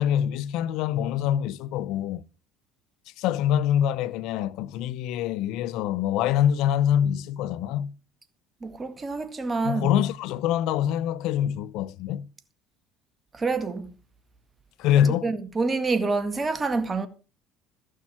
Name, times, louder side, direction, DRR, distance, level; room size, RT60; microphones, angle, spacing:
voice 1, 0.0-2.2 3.2-7.9 9.6-12.2 14.8-15.3, left 10 dB, 70° left, 0.7 m, -25 dB
voice 2, 8.6-9.9 13.3-13.9 15.2-17.1, right 3 dB, 25° right, 2.0 m, -27 dB
14.5 x 6.5 x 7.3 m
supercardioid pair, 85°, 0 cm